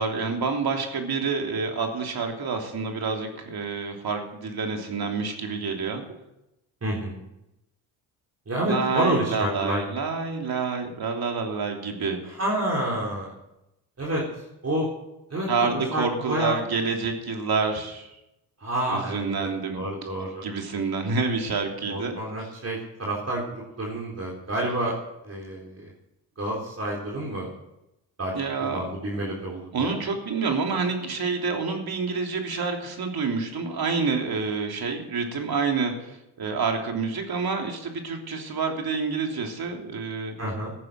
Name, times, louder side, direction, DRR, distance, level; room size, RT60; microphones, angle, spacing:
voice 1, 0.0-6.0 8.6-12.2 15.5-18.1 18.9-19.8 20.4-22.2 28.3-29.1 29.7-40.3, right 4 dB, 50° right, 3 dB, 3.2 m, -28 dB
voice 2, 6.8-7.2 8.5-9.8 12.4-13.3 14.0-14.2 14.6-14.9 15.3-16.6 18.6-20.4 21.9-24.9 25.2-25.9 26.4-27.5 28.2-28.3 28.6-29.9 40.4-40.7, right 1 dB, 30° right, -3 dB, 4.0 m, -29 dB
14.5 x 10.0 x 6.7 m, 0.91 s
supercardioid pair, 65°, 47 cm